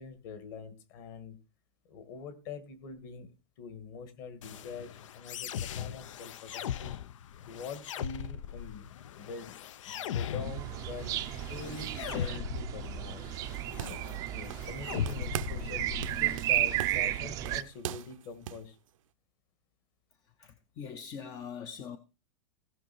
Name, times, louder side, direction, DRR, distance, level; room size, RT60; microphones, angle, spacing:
voice 1, 0.0-1.4 1.9-3.3 3.6-7.0 7.5-8.8 9.2-13.2 14.3-18.8, left 5 dB, 40° left, 2.2 m, -44 dB
sound 1, 4.4-16.4, left 9 dB, 70° left, 0.7 m, -39 dB
sound 2, 10.4-17.6, right 14 dB, 20° right, 0.5 m, -34 dB
sound 3, 13.5-14.8 15.1-15.7 16.0-18.7, right 12 dB, 85° right, 0.7 m, -41 dB
voice 2, 20.4-22.0, left 7 dB, 20° left, 0.6 m, -42 dB
17.0 x 6.3 x 4.5 m
supercardioid pair, 175°, 17 cm